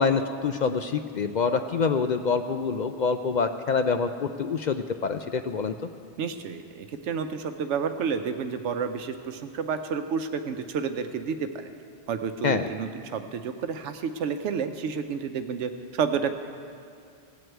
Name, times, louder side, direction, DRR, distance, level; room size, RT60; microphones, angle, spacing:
voice 1, 0.0-5.7 12.4-12.7, left 5 dB, 55° left, 8 dB, 0.5 m, -26 dB
voice 2, 6.2-11.7 12.1-16.3, right 6 dB, 85° right, 8 dB, 1.0 m, -30 dB
16.5 x 7.8 x 8.1 m, 2.4 s
omnidirectional pair, 1.2 m